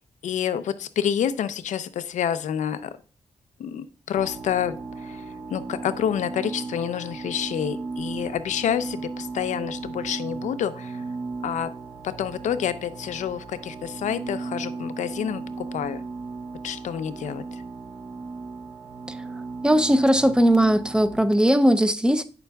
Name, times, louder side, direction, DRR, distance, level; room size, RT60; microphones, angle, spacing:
voice 1, 0.2-2.9 3.6-11.0 11.4-11.7 12.0-16.0 16.6-17.6, left 9 dB, 90° left, 0.5 m, -28 dB
sound 1, 4.2-21.2, right 3 dB, 50° right, 1.1 m, -36 dB
voice 2, 19.6-22.2, right 1 dB, 5° right, 0.5 m, -19 dB
8.6 x 6.9 x 2.3 m
cardioid pair, 75°, 12 cm